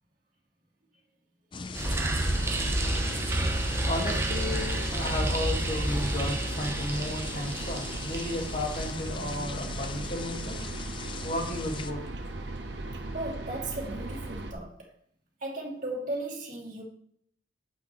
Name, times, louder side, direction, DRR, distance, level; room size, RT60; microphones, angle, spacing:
sound 1, 1.5-11.9, left 5 dB, 25° left, 0.4 m, -41 dB
sound 2, 1.7-8.9, right 1 dB, 15° right, 0.7 m, -30 dB
sound 3, 1.8-14.5, right 2 dB, 65° right, 1.1 m, -37 dB
voice 1, 3.3-10.6 11.2-12.0, left 1 dB, 40° left, 1.8 m, -34 dB
voice 2, 13.1-14.9 15.4-16.8, right 2 dB, 45° right, 2.5 m, -36 dB
9.2 x 8.5 x 3.1 m
head